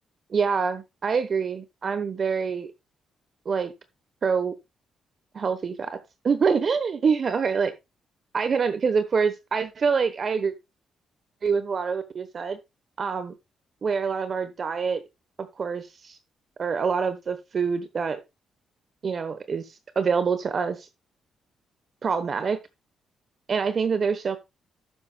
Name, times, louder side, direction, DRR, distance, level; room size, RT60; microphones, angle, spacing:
voice 1, 0.3-2.7 3.4-3.7 4.2-4.5 5.3-7.7 8.3-10.5 11.4-12.6 13.0-13.3 13.8-15.0 15.6-16.2 16.6-18.2 19.0-20.9 22.0-22.6 23.5-24.4, right 5 dB, 40° right, 1.0 m, -26 dB
12.0 x 9.5 x 2.3 m
cardioid pair, 130°, 0 cm